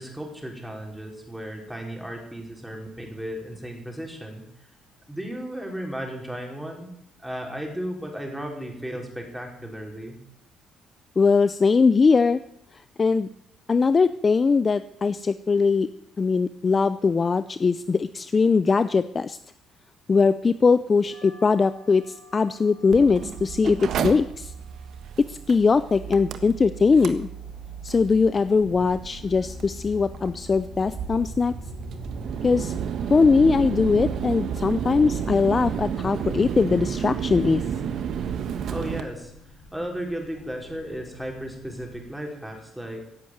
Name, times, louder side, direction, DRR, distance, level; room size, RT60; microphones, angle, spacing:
voice 1, 0.0-4.4 5.1-6.9 7.2-10.2 38.7-39.3 39.7-43.0, equal, 5° right, 0 dB, 4.8 m, -35 dB
voice 2, 11.2-12.4 13.0-13.3 13.7-15.9 16.2-19.4 20.1-24.5 25.3-27.3 27.8-31.6 32.4-32.7 33.1-37.6, left 4 dB, 30° left, 13 dB, 0.5 m, -21 dB
sound 1, 21.1-30.1, right 4 dB, 70° left, 7.9 m, -56 dB
Mechanical fan, 22.9-39.0, right 8 dB, 60° right, 1.5 m, -32 dB
sound 2, 27.3-42.1, left 1 dB, 55° left, 5.2 m, -45 dB
16.5 x 8.5 x 9.3 m, 0.74 s
cardioid pair, 110°, 0 cm